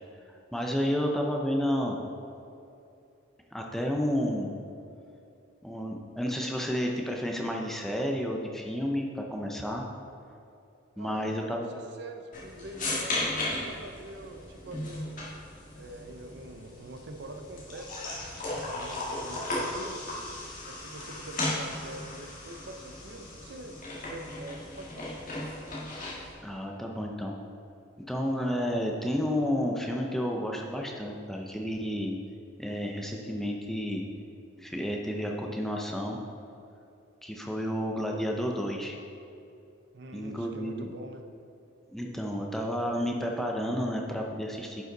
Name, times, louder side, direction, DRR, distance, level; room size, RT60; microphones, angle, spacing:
voice 1, 0.5-2.0 3.5-4.5 5.6-9.9 11.0-11.7 26.4-27.4 28.1-32.2 32.6-34.0 34.6-36.2 37.2-39.0 40.1-40.9 41.9-44.9, equal, ahead, 0 dB, 0.5 m, -31 dB
voice 2, 10.9-15.2 15.7-20.0 20.6-25.3 39.9-41.3, right 1 dB, 55° right, 5 dB, 0.6 m, -45 dB
sound 1, 12.3-26.3, left 2 dB, 40° left, 1.9 m, -36 dB
10.5 x 5.4 x 3.9 m, 2.6 s
head